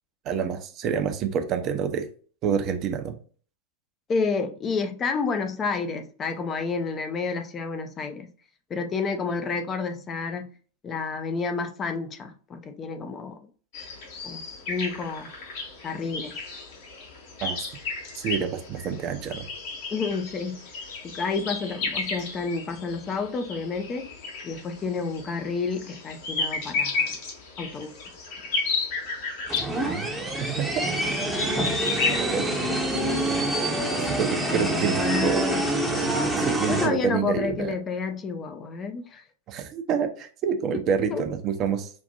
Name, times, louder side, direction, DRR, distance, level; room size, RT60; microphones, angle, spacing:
voice 1, 0.2-2.1 2.4-3.2 17.4-17.6 18.2-19.5 29.7-30.1 30.4-30.7 31.5-32.5 34.1-35.4 36.4-37.7 39.5-41.9, right 7 dB, 35° right, 0.6 m, -28 dB
voice 2, 4.1-8.3 8.7-10.4 10.8-13.4 14.2-14.4 14.7-15.3 15.8-16.4 19.9-20.7 21.0-24.1 24.4-27.2 27.6-27.9 31.6-31.7 34.4-35.6 36.7-39.2 41.1-41.2, left 4 dB, 25° left, 0.6 m, -30 dB
sound 1, 13.7-32.2, left 4 dB, 50° left, 1.2 m, -33 dB
sound 2, 29.5-36.9, right 1 dB, 5° right, 0.8 m, -26 dB
5.3 x 2.5 x 2.5 m
figure-of-eight pair, 90°, 0 cm